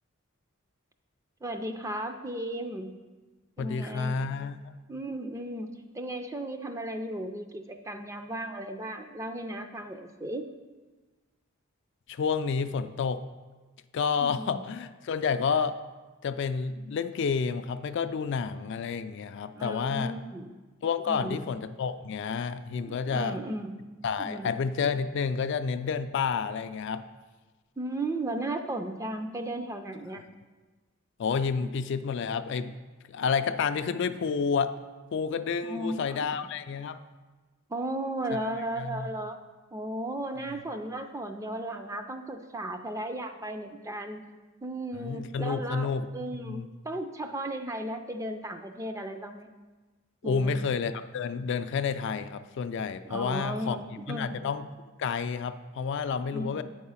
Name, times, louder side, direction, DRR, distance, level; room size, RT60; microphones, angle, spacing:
voice 1, 1.4-2.9 3.6-4.3 4.9-10.5 14.2-14.6 19.5-20.5 21.1-21.4 23.1-23.7 24.2-24.5 27.8-30.2 35.6-36.4 37.7-39.4 39.7-44.2 44.6-45.9 46.1-49.5 50.2-50.6 53.0-54.4 56.3-56.6, right 1 dB, 15° right, 6 dB, 0.4 m, -35 dB
voice 2, 3.6-4.6 12.1-13.2 13.9-15.8 16.2-20.1 20.8-23.4 24.0-27.0 30.1-30.2 31.2-32.7 33.1-34.7 35.1-37.0 38.8-39.1 44.9-46.7 50.2-53.8 54.1-54.7 55.0-56.6, left 5 dB, 55° left, 10 dB, 0.3 m, -30 dB
8.0 x 4.8 x 5.6 m, 1.3 s
head